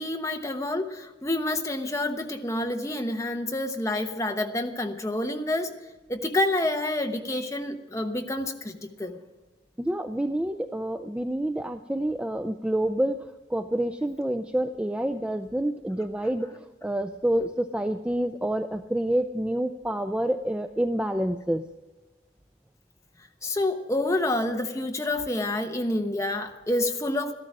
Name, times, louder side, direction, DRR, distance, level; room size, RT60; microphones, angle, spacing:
voice 1, 0.0-5.7 6.1-9.2 23.4-27.3, left 1 dB, 15° left, 4 dB, 0.9 m, -28 dB
voice 2, 9.8-21.6, right 1 dB, 5° right, 8 dB, 0.3 m, -28 dB
13.5 x 13.0 x 6.0 m, 1.2 s
head